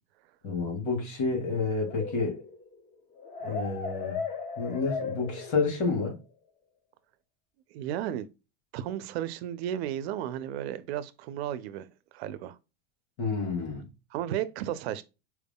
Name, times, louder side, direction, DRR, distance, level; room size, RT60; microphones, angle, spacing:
voice 1, 0.4-2.4 3.4-4.2 4.6-6.2 13.2-13.8, left 4 dB, 60° left, 2.6 m, -29 dB
sound 1, 1.8-5.9, left 4 dB, 25° left, 0.8 m, -36 dB
voice 2, 7.7-8.3 8.7-12.6 14.1-15.0, right 11 dB, 75° right, 0.6 m, -34 dB
4.6 x 3.6 x 2.2 m
supercardioid pair, 165°, 31 cm